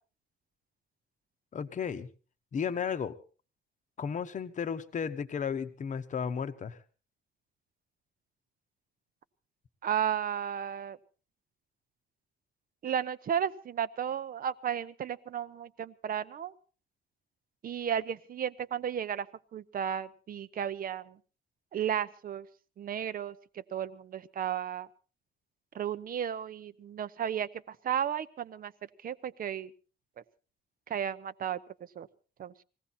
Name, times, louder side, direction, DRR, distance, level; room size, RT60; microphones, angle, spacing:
voice 1, 1.5-2.1 2.5-3.1 4.0-6.8, left 7 dB, 35° left, 10 dB, 0.9 m, -34 dB
voice 2, 9.8-11.0 12.8-16.5 17.6-19.3 19.5-21.2 21.7-22.5 22.8-24.9 25.7-28.7 29.0-29.7 30.9-31.6 32.0-32.1 32.4-32.6, right 9 dB, 45° right, 15 dB, 0.7 m, -34 dB
20.5 x 16.0 x 4.2 m, 0.38 s
cardioid pair, 170°, 21 cm